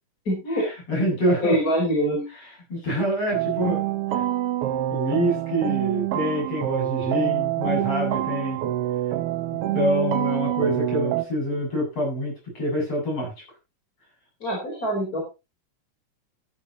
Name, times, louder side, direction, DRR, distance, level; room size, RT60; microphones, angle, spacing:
voice 1, 0.3-0.7 1.0-2.2 14.4-15.2, right 1 dB, 25° left, -1 dB, 5.1 m, -25 dB
voice 2, 0.9-1.6 2.7-3.8 4.9-8.6 9.1-9.2 9.7-13.3, equal, 45° left, -1 dB, 8.8 m, -26 dB
sound 1, 3.3-11.2, right 14 dB, 80° right, 1.3 m, -26 dB
13.5 x 12.0 x 3.0 m, 0.27 s
omnidirectional pair, 3.8 m